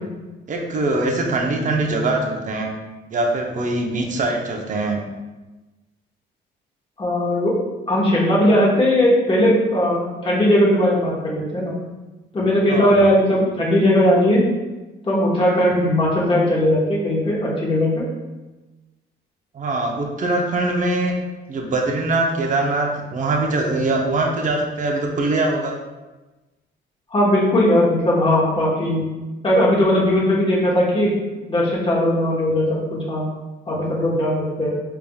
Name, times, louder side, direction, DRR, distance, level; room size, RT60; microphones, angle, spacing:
voice 1, 0.5-2.7 3.1-5.0 12.7-13.0 19.5-21.1 21.5-25.8, right 2 dB, 40° right, 1 dB, 0.7 m, -22 dB
voice 2, 7.0-7.5 7.9-11.8 12.3-14.5 15.0-18.0 27.1-29.1 29.4-31.1 31.5-33.3 33.7-34.7, left 1 dB, 25° left, -4 dB, 1.1 m, -18 dB
4.8 x 3.4 x 2.3 m, 1.1 s
cardioid pair, 90°, 20 cm